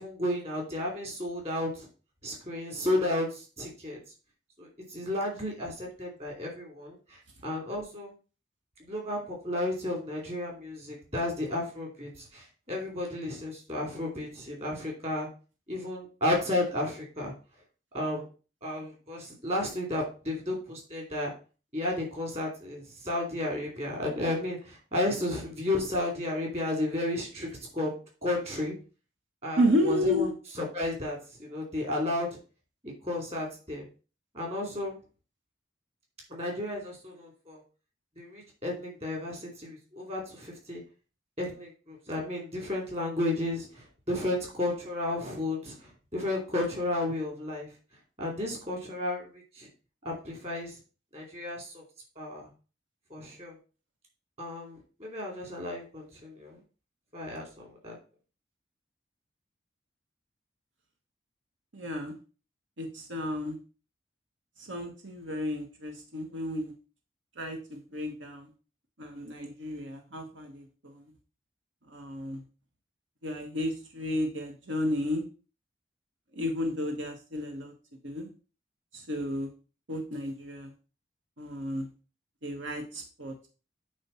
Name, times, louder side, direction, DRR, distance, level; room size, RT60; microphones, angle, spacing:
voice 1, 0.0-1.9 2.2-4.0 4.6-8.1 8.8-15.3 15.7-17.3 17.9-18.2 18.6-21.3 21.7-27.5 27.7-27.9 28.2-28.7 29.4-30.3 30.6-32.4 32.8-33.8 34.3-35.0 36.3-37.6 38.2-40.8 41.4-45.8 46.1-47.7 48.2-49.7 50.0-50.7 51.1-51.8 52.2-52.5 53.1-53.5 54.4-56.6 57.1-58.0, left 1 dB, 35° right, 0 dB, 2.9 m, -33 dB
voice 2, 29.6-30.3 61.7-62.2 62.8-63.6 64.7-66.7 67.4-68.5 69.0-71.1 71.9-72.4 73.2-75.2 76.3-77.7 78.0-78.3 78.9-79.5 79.9-80.7 81.4-81.9 82.4-83.5, equal, 90° right, 4 dB, 1.3 m, -32 dB
8.8 x 3.4 x 5.6 m, 0.35 s
head